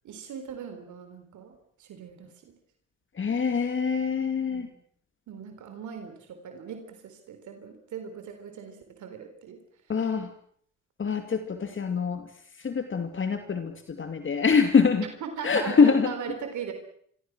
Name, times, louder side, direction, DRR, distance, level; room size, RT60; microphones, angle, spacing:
voice 1, 0.0-2.5 4.5-4.7 5.3-9.9 15.2-16.7, right 7 dB, 75° right, 7 dB, 4.1 m, -40 dB
voice 2, 3.2-4.7 9.9-10.3 11.0-12.3 12.6-15.0 15.4-16.1, left 5 dB, 40° left, 6 dB, 2.7 m, -24 dB
26.5 x 23.5 x 6.3 m, 0.63 s
cardioid pair, 90°, 30 cm